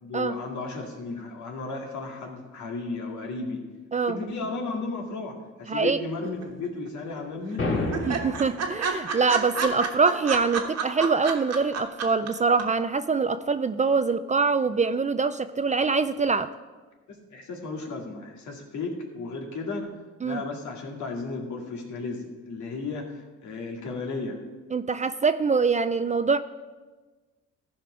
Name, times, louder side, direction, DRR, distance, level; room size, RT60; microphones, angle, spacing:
voice 1, 0.0-3.6 4.1-7.7 17.1-19.9 20.2-24.4, left 3 dB, 70° left, 1 dB, 2.1 m, -34 dB
voice 2, 5.7-6.0 8.1-16.5 20.2-20.4 24.7-26.4, right 4 dB, 25° right, 12 dB, 0.4 m, -24 dB
sound 1, 6.2-6.9 7.2-7.3 7.5-7.6 7.9-12.3 12.6-12.7, right 5 dB, 60° right, 1.4 m, -29 dB
sound 2, 7.6-8.6, left 2 dB, 45° left, 1.9 m, -28 dB
14.5 x 5.2 x 5.0 m, 1.3 s
cardioid pair, 90°, 30 cm